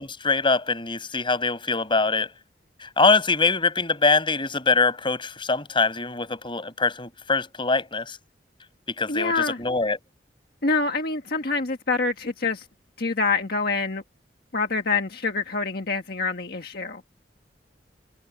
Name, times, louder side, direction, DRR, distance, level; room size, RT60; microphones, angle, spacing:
voice 1, 0.0-2.3 2.8-8.2 9.0-10.0, left 4 dB, 30° left, 5.8 m, -23 dB
voice 2, 9.1-9.6 10.6-12.6 13.0-14.0 14.5-17.0, left 4 dB, 60° left, 1.6 m, -26 dB
head